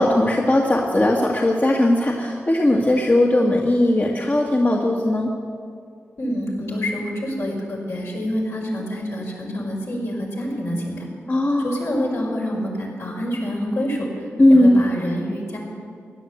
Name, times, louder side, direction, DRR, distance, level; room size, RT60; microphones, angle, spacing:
voice 1, 0.0-5.3 11.3-11.6 14.4-14.8, left 1 dB, 35° left, -1 dB, 1.9 m, -18 dB
voice 2, 6.2-11.1 11.6-14.1 14.5-15.6, equal, 65° left, -3 dB, 5.2 m, -27 dB
15.5 x 10.5 x 8.2 m, 2.2 s
cardioid pair, 45°, 5 cm